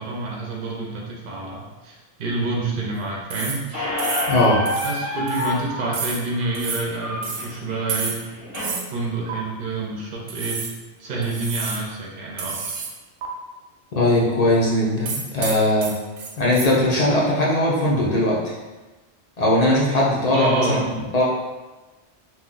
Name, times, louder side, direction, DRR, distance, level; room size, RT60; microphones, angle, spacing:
voice 1, 0.0-3.9 4.8-8.2 8.9-10.6 11.0-12.6 20.3-20.9, right 3 dB, 55° right, -2 dB, 0.6 m, -28 dB
sound 1, 3.3-3.7 4.0-4.4 4.7-5.0 5.3-5.5 5.9-6.2 6.5-6.9 7.2-7.5 7.9-8.3 8.5-8.9 9.3-9.4 10.3-10.8 11.2-11.9 12.4-12.9 13.2-13.3 15.1-16.7, right 5 dB, 85° right, 0.9 m, -30 dB
Squeak, 3.7-8.7, left 1 dB, 15° left, 0.8 m, -29 dB
voice 2, 4.3-4.6 13.9-15.9 16.4-18.4 19.4-21.2, left 1 dB, 50° left, -5 dB, 0.5 m, -19 dB
2.6 x 2.2 x 3.8 m, 1.2 s
omnidirectional pair, 1.2 m